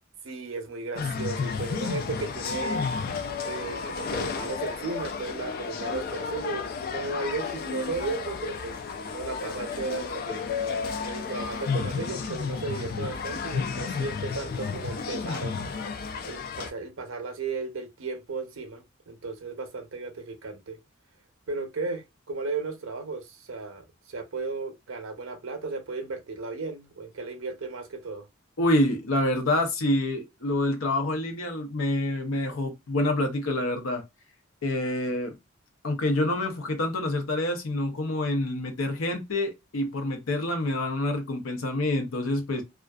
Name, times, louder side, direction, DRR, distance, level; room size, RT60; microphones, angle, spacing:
voice 1, 0.2-2.8 3.4-8.8 9.0-10.5 11.0-15.5 16.2-20.8 21.5-28.3, right 3 dB, 75° right, 0.7 m, -35 dB
sound 1, 1.0-16.7, left 5 dB, 50° left, 0.3 m, -32 dB
voice 2, 28.6-34.0 34.6-35.4 35.8-42.6, left 1 dB, 80° left, 0.7 m, -27 dB
2.5 x 2.3 x 2.3 m
head